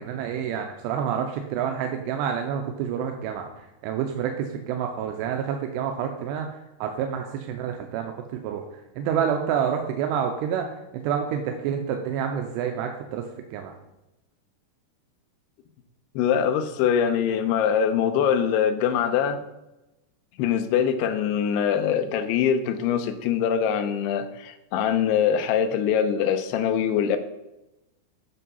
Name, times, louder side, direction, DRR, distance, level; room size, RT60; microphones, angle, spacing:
voice 1, 0.0-8.6 9.0-10.7 11.0-13.7, right 8 dB, 85° right, 4 dB, 2.8 m, -28 dB
voice 2, 16.2-19.4 20.4-27.2, left 8 dB, 80° left, 7 dB, 2.6 m, -23 dB
8.5 x 5.4 x 5.4 m, 0.95 s
omnidirectional pair, 4.9 m